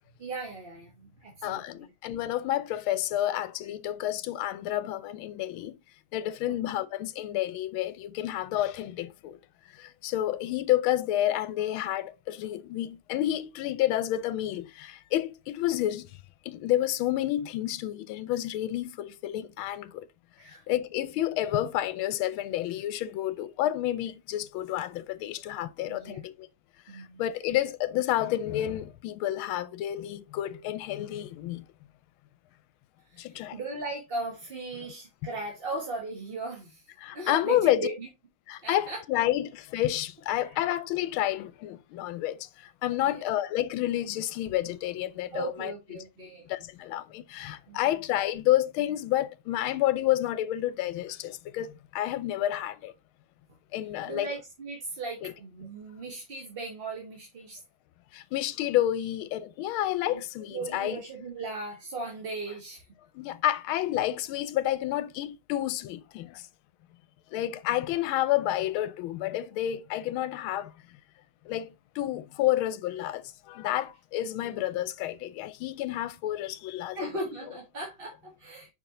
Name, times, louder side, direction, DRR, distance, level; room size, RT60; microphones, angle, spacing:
voice 1, 0.2-1.9 6.4-6.5 20.4-20.6 25.9-26.2 26.9-27.2 33.0-38.1 38.6-39.0 40.4-40.6 42.9-43.2 45.3-46.5 47.7-47.8 54.1-57.6 60.1-60.2 60.5-62.9 74.4-74.6 76.9-78.7, right 2 dB, 35° right, 1.2 m, -38 dB
voice 2, 1.4-5.8 6.1-9.4 9.8-16.1 16.5-20.1 20.7-26.5 26.9-31.6 33.2-33.6 37.0-37.9 38.5-42.5 42.8-45.7 46.5-52.9 53.7-54.3 55.2-55.3 58.1-61.0 63.1-66.5 67.3-70.7 71.5-77.1, left 13 dB, 85° left, 1.4 m, -30 dB
5.5 x 4.8 x 3.6 m
omnidirectional pair, 2.3 m